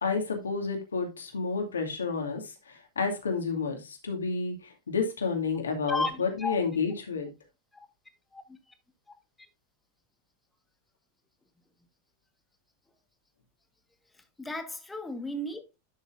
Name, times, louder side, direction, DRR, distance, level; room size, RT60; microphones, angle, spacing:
voice 1, 0.0-2.4 3.0-4.5 4.9-7.3, left 4 dB, 70° left, 2.3 m, -30 dB
voice 2, 5.9-6.6 7.7-7.9 8.3-8.4 14.4-15.8, left 2 dB, 10° left, 1.5 m, -34 dB
11.0 x 6.4 x 2.6 m
figure-of-eight pair, 90°, 0 cm